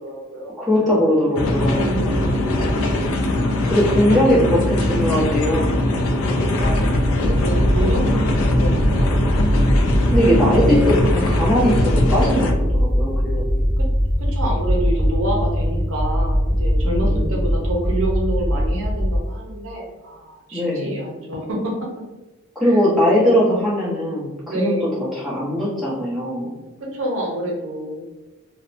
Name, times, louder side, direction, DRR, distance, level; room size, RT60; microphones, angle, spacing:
voice 1, 0.0-0.5 0.8-1.1 1.8-3.0 4.1-4.5 4.8-5.0 6.6-9.2 9.6-9.8 10.5-11.2 13.8-13.9 14.2-21.7 22.6-23.2 24.5-25.0 26.9-28.0, right 1 dB, 70° right, -2 dB, 0.6 m, -28 dB
voice 2, 0.6-2.0 3.6-5.7 10.1-13.7 16.8-17.4 20.5-21.0 22.5-24.7 25.1-26.5, equal, ahead, -10 dB, 0.9 m, -20 dB
sound 1, 1.4-12.5, left 1 dB, 75° left, 0.4 m, -21 dB
sound 2, 6.6-19.2, equal, 40° left, 1.0 m, -21 dB
2.7 x 2.1 x 2.5 m, 1.1 s
head